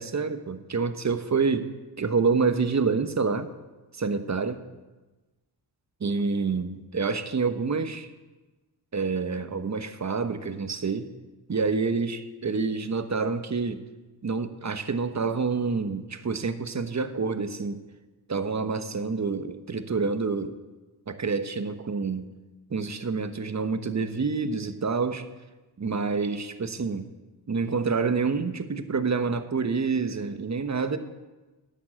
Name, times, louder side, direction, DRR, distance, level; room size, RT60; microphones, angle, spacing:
voice 1, 0.0-1.7 2.0-3.5 4.0-4.6 6.0-8.1 8.9-11.1 11.5-13.8 14.2-17.8 18.3-20.6 21.1-22.3 22.7-25.3 25.8-27.1 27.5-31.0, right 4 dB, 35° right, 10 dB, 1.1 m, -27 dB
10.5 x 7.3 x 7.7 m, 1.2 s
supercardioid pair, 40°, 48 cm